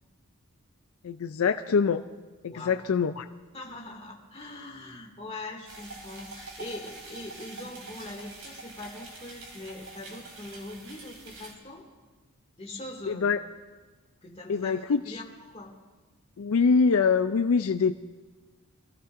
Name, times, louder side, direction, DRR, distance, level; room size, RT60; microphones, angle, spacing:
voice 1, 1.0-2.0 2.4-3.3 13.1-13.4 14.5-15.2 16.4-18.0, left 5 dB, 75° left, 9 dB, 0.4 m, -24 dB
voice 2, 2.5-2.8 3.5-11.9 12.6-13.3 14.2-15.7, left 2 dB, 25° left, -1 dB, 2.2 m, -42 dB
sound 1, 5.7-11.5, right 2 dB, 70° right, 3.3 m, -45 dB
24.5 x 15.0 x 2.5 m, 1.3 s
head